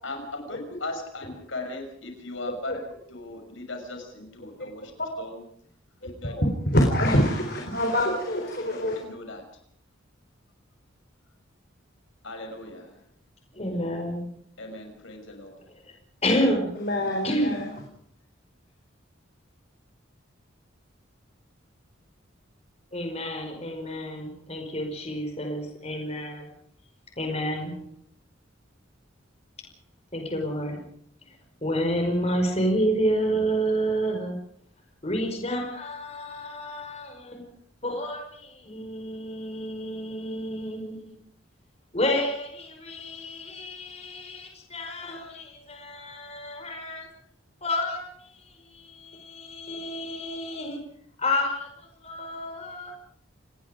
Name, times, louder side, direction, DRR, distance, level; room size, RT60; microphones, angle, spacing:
voice 1, 0.0-2.8 3.1-4.9 5.2-5.4 6.0-6.3 8.7-9.4 12.2-12.9 14.6-15.6, left 2 dB, 70° left, 4 dB, 6.3 m, -38 dB
voice 2, 6.0-9.0 16.8-17.7, equal, 50° left, 2 dB, 4.2 m, -25 dB
voice 3, 13.5-14.3 15.9-16.0 16.2-16.7 17.2-17.6 22.9-26.4 27.2-27.7 30.1-30.8 31.6-34.4 35.0-37.4 37.8-41.2 41.9-47.1 47.6-50.8 51.2-52.9, equal, 30° left, 3 dB, 5.2 m, -29 dB
29.0 x 20.0 x 5.1 m, 0.66 s
head